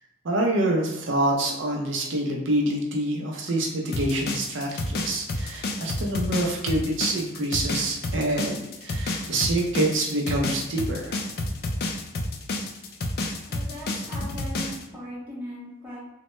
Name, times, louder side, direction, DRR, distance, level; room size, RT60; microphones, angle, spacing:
voice 1, 0.2-11.2, right 1 dB, 65° right, -1 dB, 0.5 m, -26 dB
sound 1, 3.9-14.8, left 2 dB, 50° left, 0.3 m, -30 dB
voice 2, 13.5-16.0, equal, 10° right, -8 dB, 0.9 m, -39 dB
3.0 x 2.1 x 3.0 m, 0.97 s
head